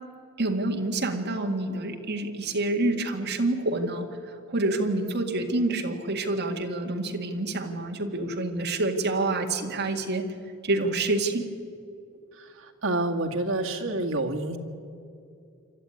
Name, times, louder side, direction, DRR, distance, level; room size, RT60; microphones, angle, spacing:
voice 1, 0.4-4.1 4.5-10.2 10.6-11.5, right 2 dB, 55° right, 3 dB, 2.1 m, -27 dB
voice 2, 12.4-14.6, right 2 dB, 75° right, 1 dB, 2.1 m, -28 dB
26.5 x 12.5 x 9.6 m, 2.5 s
head